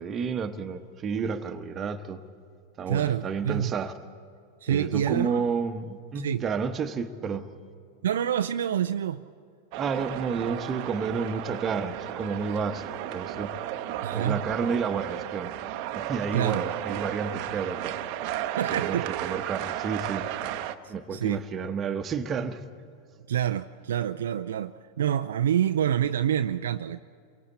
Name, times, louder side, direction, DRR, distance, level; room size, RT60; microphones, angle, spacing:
voice 1, 0.0-2.2 2.8-3.9 4.7-7.5 9.7-15.5 15.9-18.0 18.7-20.3 20.9-22.6, right 5 dB, 25° right, 1.1 m, -31 dB
voice 2, 2.9-3.7 4.6-5.5 6.2-6.4 8.0-9.2 14.0-14.5 16.3-16.6 18.5-19.1 20.8-21.4 23.3-27.0, right 10 dB, 60° right, 0.5 m, -27 dB
sound 1, 9.7-20.8, right 12 dB, 45° right, 0.8 m, -34 dB
29.5 x 23.5 x 4.3 m
figure-of-eight pair, 90°, 0 cm